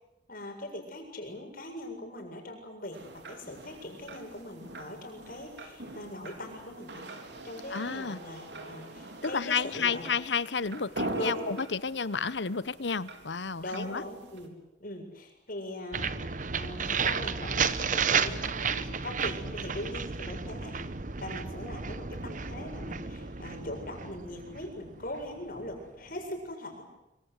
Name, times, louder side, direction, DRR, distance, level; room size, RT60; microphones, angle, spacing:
voice 1, 0.3-3.0 3.3-7.0 7.4-10.1 11.2-11.4 13.6-16.1 16.5-20.8 21.2-26.9, left 1 dB, 55° left, 3 dB, 7.6 m, -41 dB
sound 1, 2.9-14.5, right 2 dB, 80° right, 4.2 m, -43 dB
voice 2, 7.7-8.2 9.2-14.0, left 5 dB, 90° left, 18 dB, 1.0 m, -31 dB
sound 2, 15.9-25.7, right 6 dB, 45° right, 1.1 m, -32 dB
26.0 x 25.0 x 8.2 m, 0.91 s
head